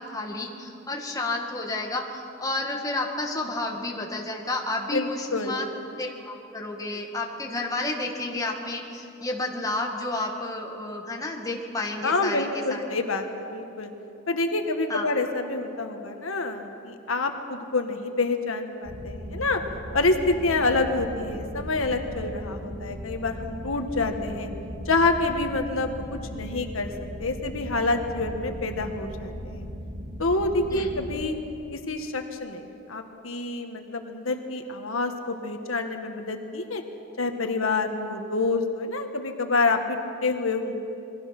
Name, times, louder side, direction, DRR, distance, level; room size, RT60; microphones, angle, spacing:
voice 1, 0.0-5.7 6.0-13.0 14.9-15.1 30.7-30.9, left 2 dB, 15° left, 0 dB, 2.2 m, -31 dB
voice 2, 4.9-5.7 12.0-13.9 14.3-19.6 19.9-24.5 24.8-26.9 27.2-29.7 30.2-31.3 31.7-36.8 37.2-40.8, left 3 dB, 85° left, 5 dB, 1.7 m, -27 dB
sound 1, 18.8-31.1, equal, 75° right, 3.8 m, -38 dB
28.0 x 22.0 x 6.1 m, 2.7 s
head